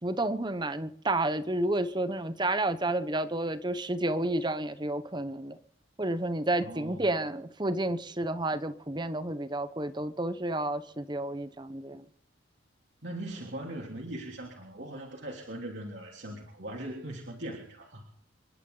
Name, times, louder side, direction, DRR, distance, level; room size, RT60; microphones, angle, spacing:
voice 1, 0.0-5.6 6.0-12.0, right 1 dB, 20° right, 1.0 m, -30 dB
voice 2, 6.6-7.3 13.0-18.1, right 1 dB, 60° right, 3.2 m, -40 dB
28.5 x 12.0 x 4.0 m
head